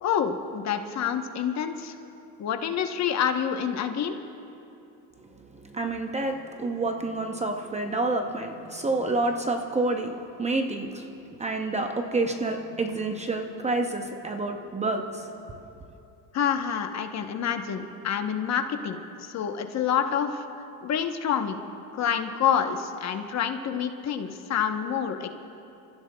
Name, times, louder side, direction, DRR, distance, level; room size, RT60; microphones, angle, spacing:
voice 1, 0.0-1.9 2.4-4.2 16.3-20.4 20.8-21.6 21.9-25.3, left 8 dB, 40° left, 6 dB, 0.9 m, -27 dB
voice 2, 5.6-11.1 11.4-15.4, right 2 dB, 15° right, 4 dB, 0.6 m, -28 dB
29.0 x 15.0 x 2.3 m, 2.8 s
cardioid pair, 135°, 43 cm